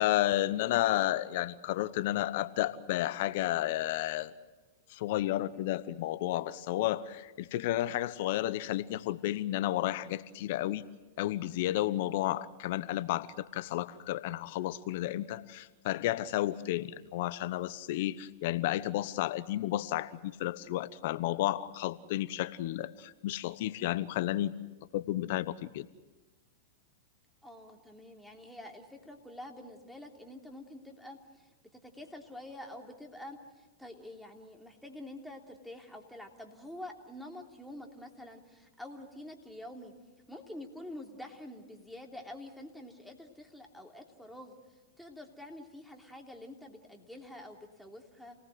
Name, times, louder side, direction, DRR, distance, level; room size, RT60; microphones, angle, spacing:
voice 1, 0.0-4.3 4.9-10.9 11.2-24.5 24.9-25.9, left 14 dB, 60° left, 15 dB, 1.0 m, -32 dB
voice 2, 27.4-39.9 40.3-44.6 45.0-48.4, left 1 dB, ahead, 1 dB, 3.2 m, -47 dB
28.0 x 18.5 x 7.8 m, 1.1 s
hypercardioid pair, 105°, 0 cm